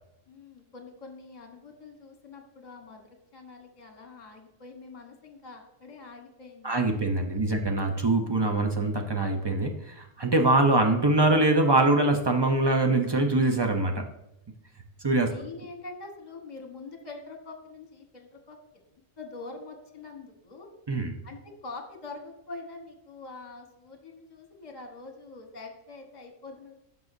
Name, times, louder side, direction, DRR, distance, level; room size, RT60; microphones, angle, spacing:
voice 1, 0.3-7.0 7.3-7.6 15.2-18.6 18.9-20.7 21.2-26.7, left 3 dB, 35° left, 3 dB, 1.2 m, -45 dB
voice 2, 6.6-14.1 15.0-15.3 20.9-21.1, right 2 dB, 40° right, 4 dB, 0.3 m, -23 dB
12.0 x 5.4 x 2.6 m, 0.85 s
omnidirectional pair, 1.4 m